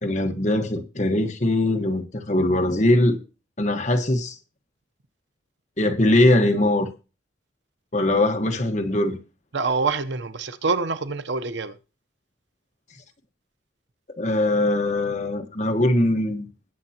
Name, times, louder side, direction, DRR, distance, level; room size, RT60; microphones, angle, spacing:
voice 1, 0.0-3.2 3.6-4.4 5.8-6.9 7.9-9.2 14.2-16.5, left 1 dB, 40° left, 1.3 m, -21 dB
voice 2, 9.5-11.8, right 4 dB, 70° right, 0.8 m, -26 dB
21.0 x 7.6 x 2.9 m
head